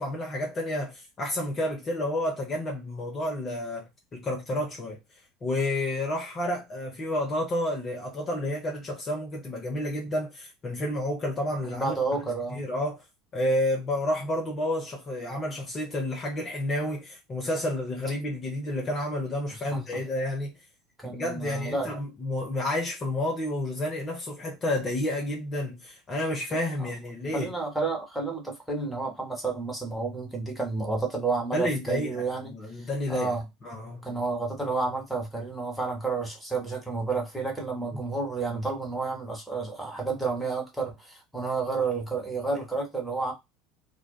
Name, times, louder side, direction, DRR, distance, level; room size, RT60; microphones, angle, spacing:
voice 1, 0.0-5.0 5.4-11.9 12.5-13.0 13.3-20.5 21.0-27.5 31.5-33.4 33.6-34.0, left 1 dB, 35° left, 0.8 m, -30 dB
voice 2, 11.6-12.6 19.7-19.8 21.0-21.9 26.8-26.9 27.3-32.5 33.1-33.4 34.0-43.3, right 3 dB, ahead, 1.3 m, -30 dB
2.5 x 2.3 x 2.2 m
hypercardioid pair, 75°, 0 cm